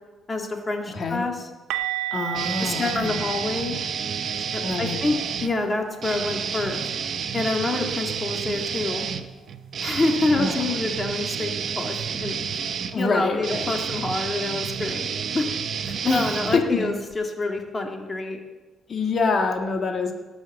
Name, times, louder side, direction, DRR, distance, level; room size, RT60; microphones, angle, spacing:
voice 1, 0.3-1.4 2.6-3.8 4.5-6.8 7.3-9.1 9.8-12.6 13.0-15.5 15.8-18.4, left 2 dB, 25° left, 2 dB, 1.9 m, -27 dB
voice 2, 0.9-1.3 2.1-3.2 4.6-5.0 10.3-10.7 12.9-13.8 16.0-16.9 18.9-20.1, left 4 dB, 45° left, 2 dB, 1.8 m, -26 dB
sound 1, 1.7-7.5 7.7-8.0 8.3-8.5 11.7-11.8, right 14 dB, 90° right, 0.6 m, -35 dB
sound 2, 2.3-5.5 6.0-17.1, right 7 dB, 60° right, 0.9 m, -30 dB
17.5 x 6.3 x 7.3 m, 1.2 s
cardioid pair, 90°, 0 cm